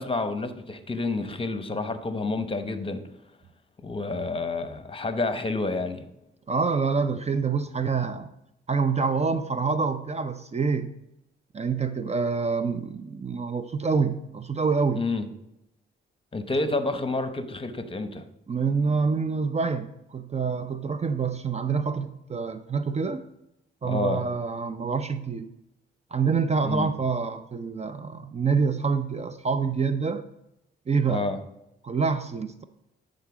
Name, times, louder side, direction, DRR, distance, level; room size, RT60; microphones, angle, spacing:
voice 1, 0.0-3.0 3.8-6.1 14.9-15.3 16.3-18.2 23.8-24.2 26.6-26.9 31.1-31.4, left 3 dB, 25° left, 10 dB, 1.0 m, -29 dB
voice 2, 6.5-8.3 8.7-10.9 11.5-15.0 18.5-23.2 23.8-25.5 26.1-30.2 30.9-31.3 31.8-32.6, right 5 dB, 30° right, 11 dB, 0.5 m, -26 dB
10.0 x 3.9 x 5.0 m, 0.85 s
supercardioid pair, 60°, 21 cm